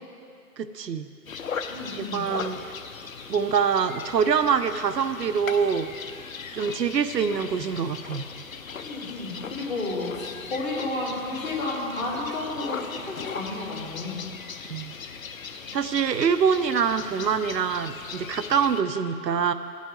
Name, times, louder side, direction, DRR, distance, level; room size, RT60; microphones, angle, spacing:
voice 1, 0.6-1.1 1.9-2.6 3.3-5.9 6.5-8.3 14.7-14.9 15.7-19.5, right 6 dB, 80° right, 12 dB, 0.6 m, -25 dB
sound 1, 1.3-18.8, left 6 dB, 55° left, 0.7 m, -38 dB
voice 2, 1.7-2.3 8.8-14.3, left 2 dB, 25° left, -7 dB, 2.7 m, -32 dB
15.0 x 9.2 x 3.3 m, 2.4 s
figure-of-eight pair, 145°, 49 cm